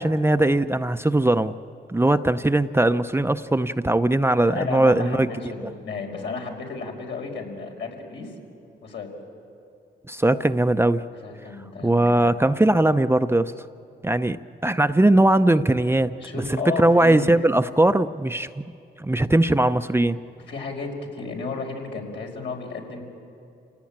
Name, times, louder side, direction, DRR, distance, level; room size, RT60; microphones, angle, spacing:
voice 1, 0.0-1.5 1.9-5.3 10.1-11.0 11.8-13.5 14.0-16.1 16.5-18.5 19.0-20.2, right 1 dB, 10° right, 9 dB, 0.7 m, -20 dB
voice 2, 4.5-8.3 8.8-9.1 11.2-12.6 16.2-17.3 20.5-23.0, left 4 dB, 70° left, 0 dB, 5.1 m, -33 dB
28.0 x 18.0 x 8.8 m, 2.5 s
cardioid pair, 65°, 19 cm